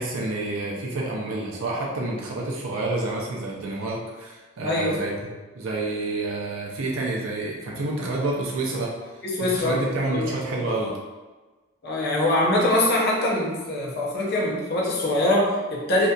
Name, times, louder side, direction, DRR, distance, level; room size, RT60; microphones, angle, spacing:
voice 1, 0.0-8.9 9.4-10.9, right 2 dB, 70° right, -3 dB, 0.5 m, -28 dB
voice 2, 4.6-5.0 9.2-9.8 10.1-10.7 11.8-16.1, left 1 dB, 50° left, -3 dB, 0.5 m, -23 dB
2.7 x 2.4 x 2.2 m, 1.3 s
head